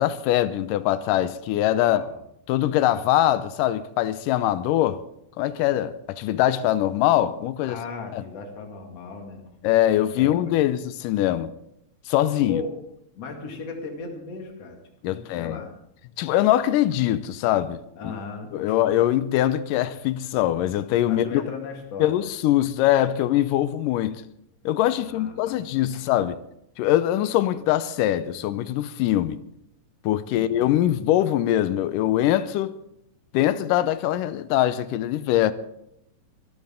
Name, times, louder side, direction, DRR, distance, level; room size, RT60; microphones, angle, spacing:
voice 1, 0.0-2.0 2.5-5.0 5.4-7.8 8.1-8.2 9.6-11.5 12.1-12.6 15.0-15.6 16.2-18.1 18.5-21.4 22.0-24.2 24.7-26.4 26.8-29.4 30.0-32.8 33.3-35.5, left 13 dB, 85° left, 2.3 m, -22 dB
voice 2, 1.8-2.2 7.6-9.4 10.2-10.5 12.5-12.7 13.1-14.8 15.0-15.7 17.9-18.8 21.1-22.2 25.0-25.6 25.9-26.0 30.3-31.0, left 4 dB, 50° left, 3.1 m, -37 dB
23.0 x 13.0 x 3.7 m
omnidirectional pair, 3.8 m